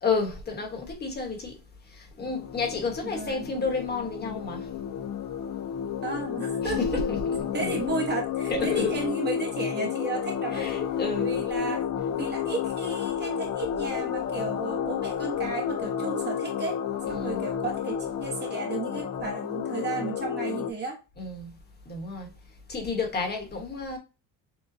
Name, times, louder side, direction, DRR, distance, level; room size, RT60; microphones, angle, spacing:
voice 1, 0.0-1.5 1.9-4.7 6.6-7.8 8.5-9.0 10.5-11.4 17.1-17.5 21.2-21.5 21.9-22.3 22.7-24.0, left 4 dB, 30° left, 1.2 m, -31 dB
sound 1, 2.2-20.7, left 8 dB, 55° left, 0.6 m, -31 dB
voice 2, 3.0-3.5 6.0-6.8 7.5-10.7 11.2-11.8 12.2-16.8 17.1-21.0, right 3 dB, 30° right, 1.1 m, -34 dB
6.8 x 2.3 x 2.7 m
cardioid pair, 145°, 35 cm